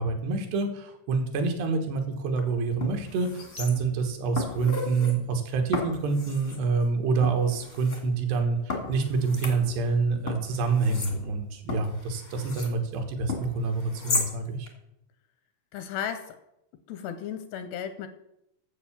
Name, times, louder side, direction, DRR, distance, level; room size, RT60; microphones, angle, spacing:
voice 1, 0.0-14.7, right 4 dB, 70° right, 4 dB, 3.2 m, -27 dB
sound 1, 2.3-2.4 2.8-4.0 4.4-5.1 5.7-6.6 7.2-8.0 8.7-10.0 10.3-12.8 13.3-14.3 14.7-14.8, left 3 dB, 55° left, 0.6 m, -35 dB
voice 2, 15.7-16.4 16.9-18.1, left 8 dB, 85° left, 9 dB, 2.5 m, -34 dB
9.2 x 7.6 x 7.2 m, 0.82 s
omnidirectional pair, 5.3 m